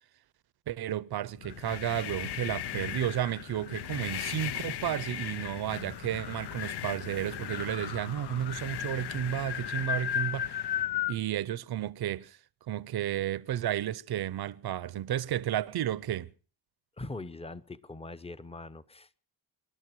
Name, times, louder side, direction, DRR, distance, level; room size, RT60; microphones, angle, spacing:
voice 1, 0.7-10.7 11.1-12.4 12.7-16.3, right 11 dB, 65° right, 0.7 m, -32 dB
sound 1, 1.4-11.2, left 11 dB, 75° left, 0.7 m, -36 dB
voice 2, 17.0-19.2, left 2 dB, 15° left, 0.7 m, -42 dB
26.0 x 12.0 x 4.6 m
cardioid pair, 115°, 40 cm